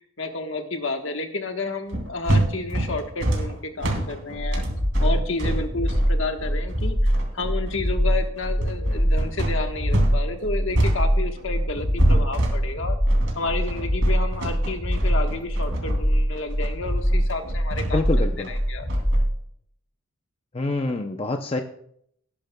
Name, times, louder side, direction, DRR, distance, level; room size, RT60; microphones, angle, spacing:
voice 1, 0.0-4.6 5.0-13.0 13.3-18.9, left 3 dB, 60° left, 5 dB, 1.2 m, -31 dB
sound 1, 1.9-10.2 10.4-19.2, right 1 dB, 60° right, 2.7 m, -27 dB
sound 2, 4.4-19.3, equal, 10° right, 2.5 m, -23 dB
voice 2, 17.9-18.5 20.5-21.6, left 2 dB, 25° left, 4 dB, 0.5 m, -26 dB
18.0 x 10.5 x 2.2 m, 0.70 s
head